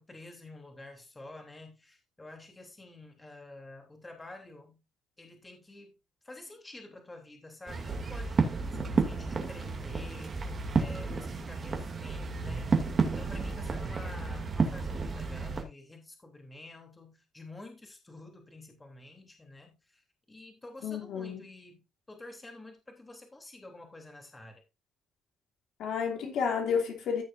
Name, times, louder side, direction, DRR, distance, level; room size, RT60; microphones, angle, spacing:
voice 1, 0.0-4.8 5.2-6.0 6.2-10.5 10.7-12.7 13.0-20.0 20.3-24.6, left 2 dB, 15° left, 3.2 m, -49 dB
sound 1, 7.7-15.6, right 4 dB, 35° right, 2.5 m, -31 dB
voice 2, 20.8-21.4 25.8-27.2, left 6 dB, 70° left, 2.7 m, -31 dB
15.0 x 6.4 x 2.6 m
cardioid pair, 110°, 0 cm